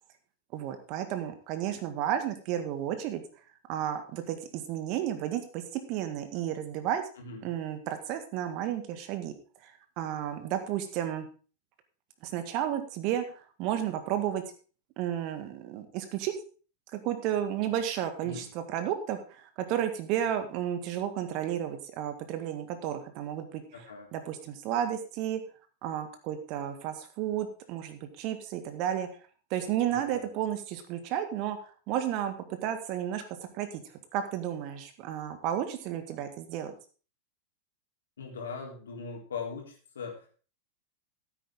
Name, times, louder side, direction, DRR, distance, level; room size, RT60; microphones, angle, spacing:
voice 1, 0.5-3.2 3.7-7.0 7.4-9.3 9.6-11.3 12.2-14.4 15.0-16.3 16.9-23.6 24.1-25.4 25.8-29.1 29.5-31.6 31.9-32.3 32.6-33.2 33.5-33.8 34.1-36.7, right 10 dB, 40° right, 9 dB, 1.7 m, -32 dB
voice 2, 7.2-7.5 18.2-18.5 23.7-24.1 29.9-30.2 38.2-40.4, left 5 dB, 65° left, 0 dB, 3.5 m, -40 dB
14.5 x 8.7 x 3.7 m, 0.38 s
figure-of-eight pair, 90°, 0 cm